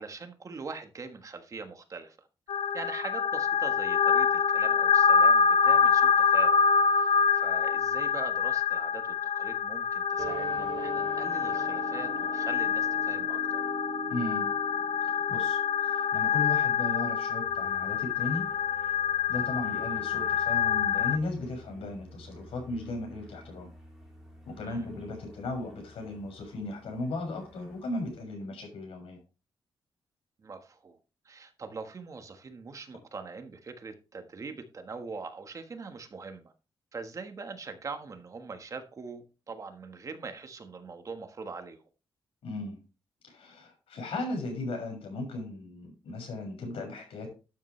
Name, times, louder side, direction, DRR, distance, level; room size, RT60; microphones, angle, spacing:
voice 1, 0.0-2.3 2.7-6.6 6.9-13.6 24.6-24.9 30.4-31.0 31.2-36.5 36.9-41.8, right 4 dB, 35° right, 1.4 m, -42 dB
sound 1, 2.5-21.2, left 6 dB, 65° left, 0.6 m, -26 dB
sound 2, 10.2-16.6, right 3 dB, 75° right, 2.8 m, -41 dB
voice 2, 14.1-14.5 15.3-18.5 19.3-23.7 24.4-29.2 42.4-42.8 43.2-47.3, left 2 dB, 90° left, 6.6 m, -36 dB
sound 3, 17.4-28.2, right 1 dB, 5° right, 3.8 m, -53 dB
12.0 x 8.2 x 3.2 m
wide cardioid pair, 160°, 9 cm